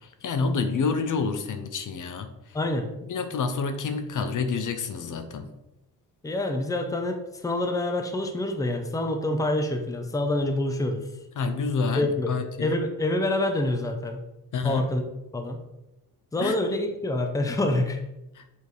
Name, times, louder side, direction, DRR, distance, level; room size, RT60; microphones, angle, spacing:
voice 1, 0.0-2.6 3.1-5.5 11.4-12.8 14.5-14.9 16.4-16.5 18.3-18.4, left 4 dB, 55° left, 8 dB, 0.7 m, -28 dB
voice 2, 2.5-2.9 6.2-11.0 11.9-14.2 14.6-15.0 15.3-15.6 16.3-18.0, left 1 dB, 10° left, 5 dB, 0.6 m, -27 dB
6.7 x 3.5 x 4.7 m, 0.93 s
cardioid pair, 130°, 37 cm